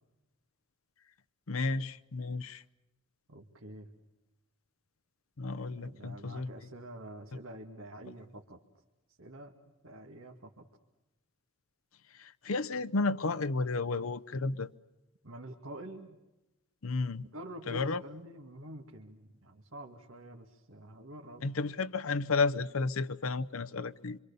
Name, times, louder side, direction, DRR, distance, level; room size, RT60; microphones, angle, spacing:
voice 1, 1.5-2.6 5.4-6.5 12.1-14.7 16.8-17.3 17.7-18.0 21.4-24.2, left 3 dB, 85° left, 0.8 m, -32 dB
voice 2, 3.3-3.9 5.7-8.6 9.2-9.5 9.8-10.7 15.2-16.2 17.3-21.7, right 1 dB, 80° right, 2.2 m, -47 dB
26.5 x 26.5 x 6.9 m
head